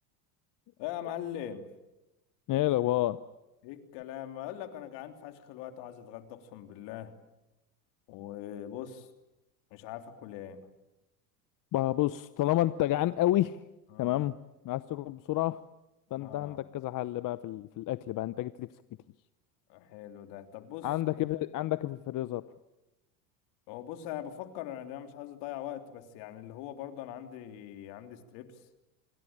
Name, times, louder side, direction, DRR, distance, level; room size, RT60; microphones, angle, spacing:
voice 1, 0.8-1.6 3.6-7.1 8.1-9.1 9.7-10.7 13.9-14.2 16.1-16.6 19.7-20.9 23.7-28.6, left 11 dB, 65° left, 7 dB, 3.4 m, -41 dB
voice 2, 2.5-3.2 11.7-13.6 14.0-14.3 14.6-15.6 16.1-18.7 20.8-22.4, left 15 dB, 45° left, 15 dB, 0.9 m, -29 dB
27.5 x 22.0 x 8.9 m, 0.98 s
supercardioid pair, 95°, 45 cm